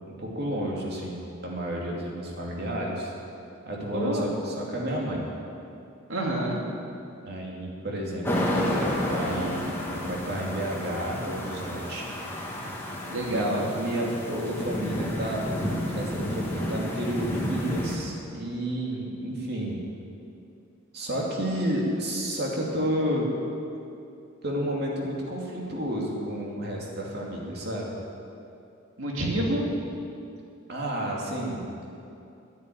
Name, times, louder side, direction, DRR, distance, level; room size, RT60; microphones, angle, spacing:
voice 1, 0.1-3.1 3.7-5.3 7.2-12.1 13.3-13.5 13.8-19.8 20.9-23.3 24.4-27.9 30.7-31.7, equal, 50° right, -2 dB, 2.6 m, -31 dB
voice 2, 3.9-4.2 6.1-6.6 13.1-13.7 29.0-29.7, right 1 dB, 70° right, -2 dB, 2.6 m, -27 dB
sound 1, 8.2-17.9, left 1 dB, 10° left, 1.7 m, -31 dB
11.0 x 9.3 x 9.2 m, 2.6 s
head